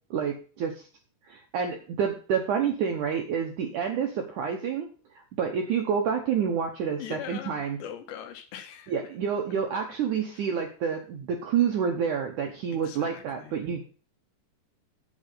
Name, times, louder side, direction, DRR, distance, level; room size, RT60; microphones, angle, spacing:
voice 1, 0.1-0.9 1.3-4.9 5.4-7.8 8.9-13.9, right 7 dB, 85° right, 3 dB, 1.7 m, -28 dB
voice 2, 7.0-9.1 10.3-10.5 12.8-13.6, left 10 dB, 75° left, 7 dB, 3.4 m, -41 dB
8.7 x 8.0 x 5.6 m, 0.38 s
omnidirectional pair, 5.2 m